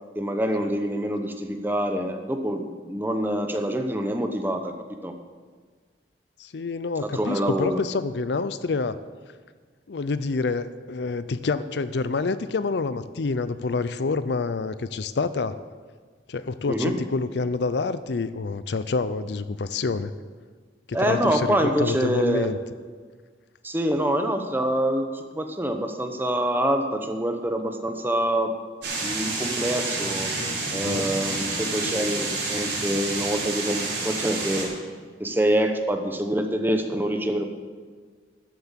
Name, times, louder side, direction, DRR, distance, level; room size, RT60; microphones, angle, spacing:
voice 1, 0.1-4.7 5.0-5.1 7.1-7.8 16.7-16.9 20.9-22.5 23.6-28.5 29.0-30.3 30.7-34.7 35.2-37.4, right 1 dB, 10° right, 5 dB, 0.9 m, -25 dB
voice 2, 6.4-9.0 9.9-15.6 16.3-20.1 20.9-22.6 30.7-31.1, left 4 dB, 65° left, 14 dB, 0.5 m, -27 dB
sound 1, 28.8-34.6, right 3 dB, 75° right, 4.8 m, -29 dB
13.0 x 7.8 x 7.3 m, 1.5 s
head